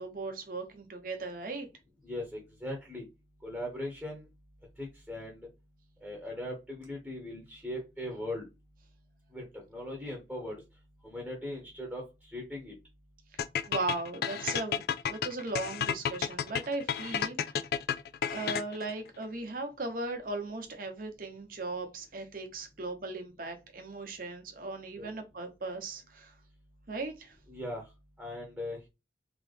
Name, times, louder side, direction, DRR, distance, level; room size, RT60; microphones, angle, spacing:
voice 1, 0.0-1.7 13.7-17.5 18.3-26.3 26.9-27.4, right 3 dB, 50° right, 0.9 m, -37 dB
voice 2, 2.0-3.0 3.4-4.2 4.8-5.4 6.0-8.5 9.3-10.6 11.0-12.0 12.3-12.7 25.0-25.1 27.5-27.9 28.2-28.8, left 1 dB, 5° right, 1.1 m, -39 dB
sound 1, 13.4-18.9, left 8 dB, 55° left, 0.3 m, -31 dB
3.9 x 3.0 x 3.3 m
head